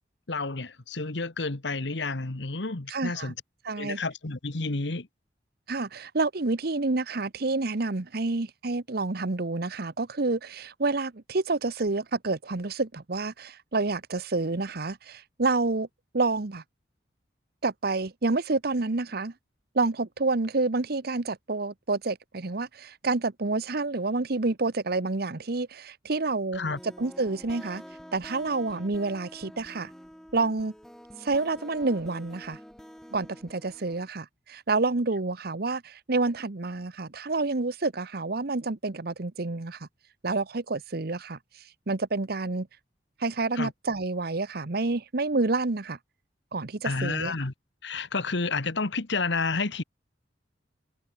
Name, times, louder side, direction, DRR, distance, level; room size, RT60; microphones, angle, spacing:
voice 1, 0.3-3.3 3.8-5.1 26.5-26.8 43.6-43.7 46.8-47.5 47.8-49.8, left 3 dB, 75° left, 1.5 m, -30 dB
voice 2, 2.9-3.3 3.6-4.0 5.7-15.9 16.1-16.6 17.6-19.3 19.7-26.6 27.0-27.8 28.1-29.9 30.3-30.7 31.2-32.6 33.1-39.9 40.2-41.4 41.9-42.7 43.2-46.0 46.5-47.3, right 3 dB, 60° right, 1.0 m, -28 dB
sound 1, 26.5-34.1, equal, 5° left, 1.5 m, -47 dB
head